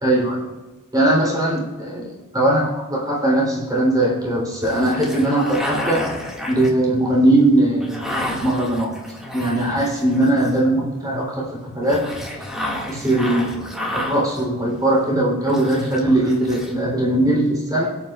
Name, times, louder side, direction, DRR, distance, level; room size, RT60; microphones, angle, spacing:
voice 1, 0.0-0.4 0.9-6.0 6.5-8.1 8.4-8.9 9.3-12.1 12.9-13.5 13.9-17.9, right 1 dB, 20° right, -4 dB, 3.7 m, -20 dB
sound 1, 4.6-10.8 11.8-15.2 15.4-16.7, left 1 dB, 5° right, 2.1 m, -31 dB
24.0 x 9.0 x 2.5 m, 1.2 s
head